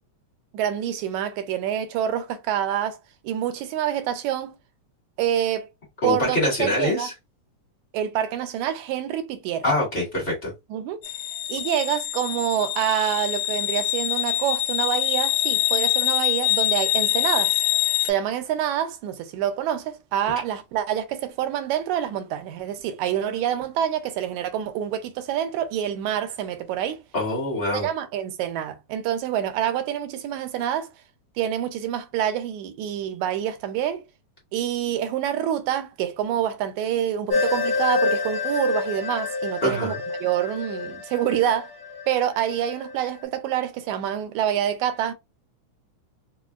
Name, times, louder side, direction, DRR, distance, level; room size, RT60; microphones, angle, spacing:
voice 1, 0.5-3.0 3.2-4.5 5.2-5.7 6.0-7.1 7.9-9.6 10.7-11.0 11.5-17.6 18.0-27.0 27.7-30.9 31.4-34.0 34.5-41.7 42.1-45.1, right 10 dB, 80° right, 1.8 m, -26 dB
voice 2, 6.0-7.1 9.6-10.5 27.1-27.9 39.6-40.0, left 1 dB, 30° left, 1.0 m, -24 dB
sound 1, 11.0-18.1, left 15 dB, 80° left, 1.7 m, -24 dB
sound 2, 37.3-43.0, left 4 dB, 50° left, 1.7 m, -28 dB
4.9 x 2.1 x 2.3 m
omnidirectional pair, 3.4 m